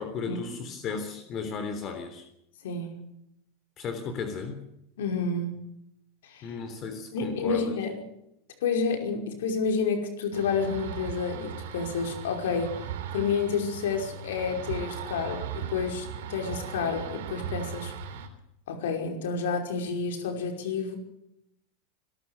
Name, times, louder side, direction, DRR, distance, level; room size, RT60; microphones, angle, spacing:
voice 1, 0.0-2.2 3.8-4.6 6.4-7.8, left 5 dB, 40° left, 7 dB, 3.5 m, -35 dB
voice 2, 2.6-3.0 5.0-5.5 6.2-6.5 7.1-8.0 8.6-12.7 13.1-17.9 18.7-21.0, left 5 dB, 80° left, 4 dB, 5.4 m, -29 dB
sound 1, 10.3-18.3, right 8 dB, 80° right, 3.6 m, -38 dB
25.5 x 12.5 x 8.3 m, 0.81 s
supercardioid pair, 120°, 0 cm